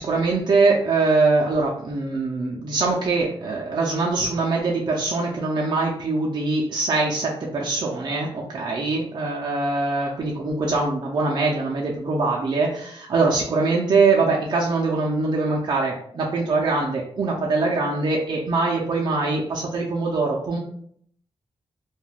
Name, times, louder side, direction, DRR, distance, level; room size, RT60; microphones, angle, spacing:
voice 1, 0.0-20.6, right 3 dB, 45° right, -3 dB, 0.4 m, -23 dB
2.3 x 2.2 x 3.2 m, 0.65 s
wide cardioid pair, 150°, 10 cm